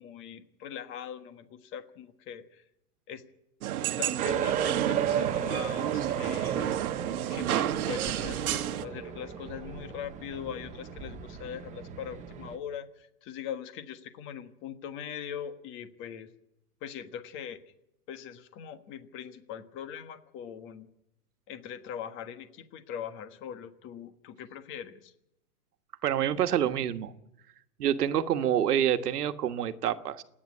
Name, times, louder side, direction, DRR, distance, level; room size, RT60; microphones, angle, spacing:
voice 1, 0.0-2.6 3.1-3.3 4.0-6.8 7.3-16.3 16.8-17.6 18.1-20.9 21.5-25.1, left 8 dB, 25° left, 10 dB, 1.4 m, -41 dB
sound 1, 3.6-8.8, right 11 dB, 65° right, 1.3 m, -31 dB
sound 2, 4.2-12.6, right 8 dB, 15° right, 1.0 m, -34 dB
voice 2, 26.0-27.1 27.8-30.2, right 10 dB, 85° right, 8 dB, 1.5 m, -27 dB
27.0 x 9.9 x 9.8 m, 0.81 s
hypercardioid pair, 155°, 46 cm